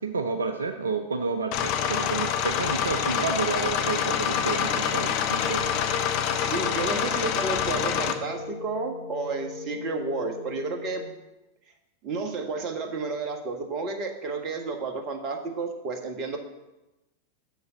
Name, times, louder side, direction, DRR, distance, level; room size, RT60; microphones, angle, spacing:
voice 1, 0.0-5.7, right 4 dB, 75° right, 7 dB, 0.6 m, -30 dB
sound 1, 1.5-8.1, left 8 dB, 40° left, 0.8 m, -26 dB
sound 2, 5.4-11.1, left 5 dB, 10° left, 1.6 m, -38 dB
voice 2, 6.3-11.0 12.0-16.4, right 3 dB, 35° right, 5 dB, 1.4 m, -31 dB
6.9 x 6.4 x 6.9 m, 1.0 s
figure-of-eight pair, 90°, 0 cm